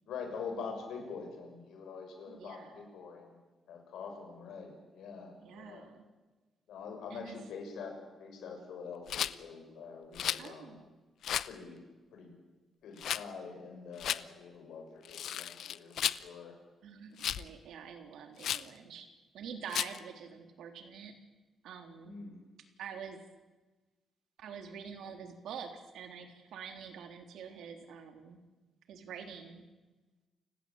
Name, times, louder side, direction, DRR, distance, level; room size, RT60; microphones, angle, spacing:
voice 1, 0.1-3.4 3.7-5.9 6.7-10.8 11.5-11.8 12.1-12.3 12.8-16.5 19.7-19.8 22.0-22.4, left 5 dB, 85° left, 3 dB, 7.1 m, -45 dB
voice 2, 2.3-2.8 5.4-6.0 7.1-7.4 10.4-10.8 16.8-19.1 19.3-21.2 21.6-22.1 22.8-23.2 24.4-28.4 28.9-29.6, right 7 dB, 85° right, 6 dB, 3.6 m, -46 dB
Rattle, 9.1-9.3 10.1-10.5 11.2-11.5 13.0-13.2 14.0-14.2 15.0-16.2 17.2-17.5 18.4-18.7 19.7-20.0, left 10 dB, 70° left, 0.7 m, -34 dB
29.5 x 17.0 x 8.9 m, 1.2 s
cardioid pair, 160°, 0 cm